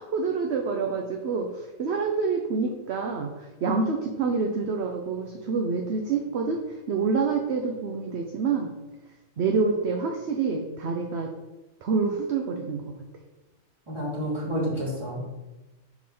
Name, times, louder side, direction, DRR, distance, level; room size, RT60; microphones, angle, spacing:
voice 1, 0.0-6.6 6.9-8.7 9.4-11.3 11.8-12.8, right 4 dB, 60° right, 2 dB, 0.9 m, -27 dB
voice 2, 13.9-15.2, equal, 20° right, -6 dB, 2.8 m, -29 dB
6.2 x 4.7 x 5.4 m, 1.1 s
omnidirectional pair, 1.4 m